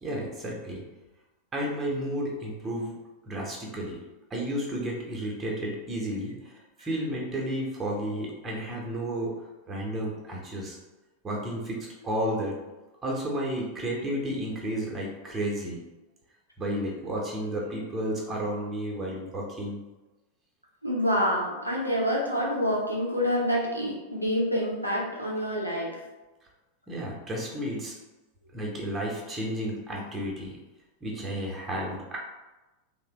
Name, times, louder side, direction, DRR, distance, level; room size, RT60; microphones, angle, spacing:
voice 1, 0.0-0.8 1.5-2.9 3.2-4.0 4.3-6.5 6.8-9.4 9.7-10.8 11.2-12.6 13.0-15.8 16.6-19.8 26.9-27.9 28.5-30.6 31.0-32.2, right 1 dB, 15° right, -3 dB, 0.8 m, -32 dB
voice 2, 20.8-25.9, equal, 90° left, -4 dB, 0.7 m, -27 dB
3.2 x 2.1 x 2.9 m, 1.1 s
figure-of-eight pair, 90°, 0 cm